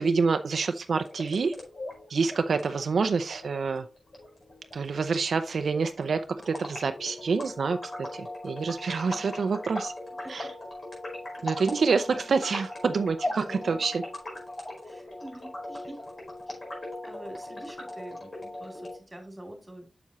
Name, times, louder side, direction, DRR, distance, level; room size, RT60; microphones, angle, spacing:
voice 1, 0.0-1.5 2.1-3.9 4.7-9.9 10.3-10.5 11.4-14.0, right 5 dB, 85° right, 8 dB, 0.6 m, -27 dB
sound 1, 1.0-19.0, left 1 dB, 50° left, 4.6 m, -39 dB
voice 2, 9.0-9.4 10.2-10.5 11.4-11.8 12.1-12.2 13.3-13.8 14.8-16.0 16.5-16.6 17.0-19.9, right 1 dB, 15° right, 3 dB, 3.0 m, -46 dB
7.2 x 7.1 x 3.1 m, 0.30 s
wide cardioid pair, 80°, 0 cm